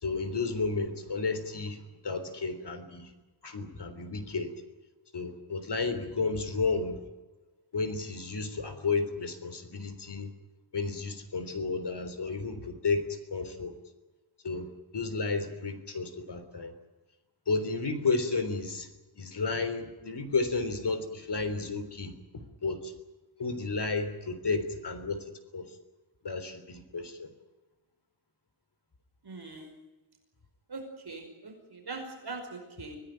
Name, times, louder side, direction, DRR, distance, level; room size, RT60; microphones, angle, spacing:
voice 1, 0.0-3.1 3.4-4.5 5.1-7.0 7.7-10.3 10.7-13.1 13.3-13.7 14.4-16.7 17.5-18.9 19.2-22.1 22.6-22.9 23.4-25.2 25.5-25.6 26.2-27.3, left 4 dB, 55° left, 10 dB, 3.6 m, -32 dB
voice 2, 29.2-29.7 30.7-33.0, right 3 dB, 50° right, 3 dB, 5.3 m, -42 dB
25.5 x 17.5 x 9.3 m, 1.1 s
wide cardioid pair, 155°, 49 cm